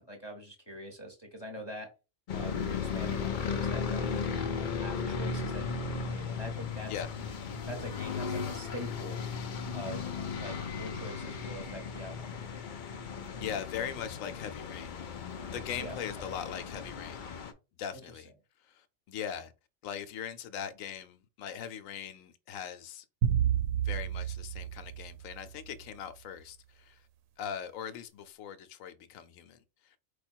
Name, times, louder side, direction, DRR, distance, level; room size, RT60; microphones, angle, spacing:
voice 1, 0.0-1.9 2.3-4.0 4.5-6.9 7.2-9.2 9.7-10.1 10.4-12.7 15.8-16.0, equal, 20° left, 0.9 m, -44 dB
sound 1, 2.3-17.5, left 5 dB, 55° left, 0.5 m, -36 dB
voice 2, 13.3-15.0 15.5-17.3 17.8-18.3 18.6-19.5 19.8-23.0 23.8-27.0 27.4-29.6 29.8-30.0, left 8 dB, 75° left, 1.0 m, -40 dB
sound 2, 23.2-25.7, right 9 dB, 80° right, 1.0 m, -30 dB
4.9 x 2.3 x 4.4 m
omnidirectional pair, 1.4 m